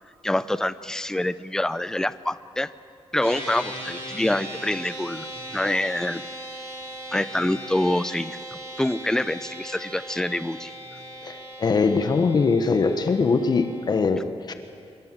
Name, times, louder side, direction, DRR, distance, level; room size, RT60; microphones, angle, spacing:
voice 1, 0.2-2.7 3.1-5.3 5.5-6.2 7.1-10.7, left 1 dB, 5° left, 14 dB, 0.6 m, -26 dB
sound 1, 3.2-14.0, right 1 dB, 25° right, 7.3 m, -38 dB
voice 2, 11.2-14.5, left 4 dB, 40° left, 8 dB, 1.2 m, -22 dB
25.0 x 23.5 x 7.6 m, 2.4 s
wide cardioid pair, 170°, 11 cm